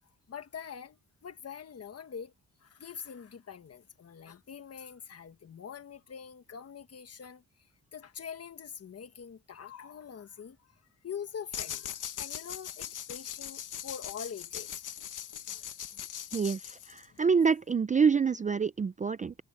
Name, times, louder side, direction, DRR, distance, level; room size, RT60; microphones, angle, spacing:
voice 1, 0.3-2.3 2.6-7.4 7.9-14.8 15.5-15.7 15.9-16.0 17.4-17.5, left 7 dB, 50° left, 1.4 m, -44 dB
sound 1, 11.5-17.2, left 10 dB, 75° left, 1.0 m, -40 dB
voice 2, 16.3-19.3, right 5 dB, 25° right, 0.3 m, -27 dB
wide cardioid pair, 165°, 31 cm